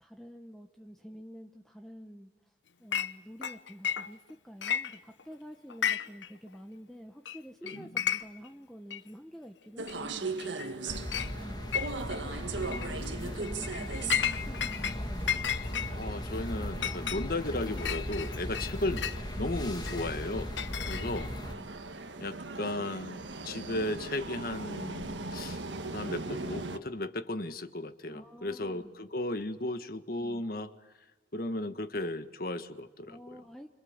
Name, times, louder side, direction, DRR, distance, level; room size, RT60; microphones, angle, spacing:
voice 1, 0.0-2.3 2.8-10.3 11.4-11.7 12.2-15.3 20.7-21.6 28.1-28.9 30.1-30.4 33.1-33.7, equal, ahead, 4 dB, 1.0 m, -48 dB
Chink clink, 2.9-3.1 3.4-4.3 4.6-5.3 5.7-6.3 6.5-6.6 7.3-7.4 7.7-8.5 8.9-9.0 9.9-10.0 10.4-10.7 11.1-11.3 11.7-12.2 12.6-12.9 13.4-15.0 15.3-19.2 19.9-21.4, left 8 dB, 80° left, 0.9 m, -33 dB
voice 2, 7.6-8.0 10.8-11.0 12.5-13.2 15.9-19.1 19.3-20.5 20.8-21.3 22.2-30.7 31.3-33.4, left 1 dB, 50° left, 10 dB, 1.6 m, -35 dB
sound 1, 9.8-26.8, right 3 dB, 85° right, 1.6 m, -40 dB
sound 2, 10.9-21.5, left 1 dB, 25° left, 2.2 m, -38 dB
27.0 x 26.0 x 8.0 m, 1.2 s
head